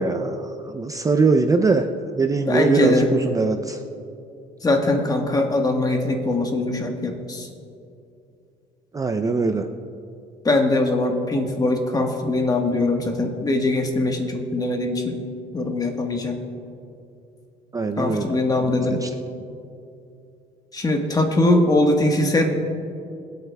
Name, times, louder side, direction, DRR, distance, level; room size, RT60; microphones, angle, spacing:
voice 1, 0.0-1.9 2.1-3.8 8.9-9.7 17.7-18.3 18.9-19.1, right 4 dB, 20° right, 6 dB, 0.5 m, -22 dB
voice 2, 2.5-3.1 4.6-7.5 10.4-15.2 15.5-16.4 18.0-19.0 20.7-22.5, left 2 dB, 20° left, 3 dB, 1.3 m, -21 dB
24.5 x 8.2 x 2.3 m, 2.6 s
cardioid pair, 110°, 17 cm